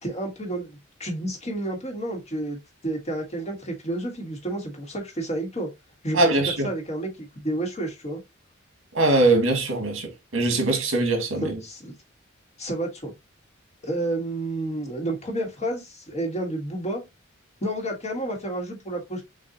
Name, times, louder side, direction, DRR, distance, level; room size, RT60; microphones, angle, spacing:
voice 1, 0.0-2.6 2.8-5.7 6.0-6.3 6.6-8.2 11.4-11.9 12.6-13.1 13.8-17.0 17.6-19.2, right 1 dB, 35° left, 1.5 m, -30 dB
voice 2, 6.1-6.7 8.9-11.6, right 2 dB, 75° right, 1.6 m, -22 dB
6.6 x 2.6 x 2.7 m
head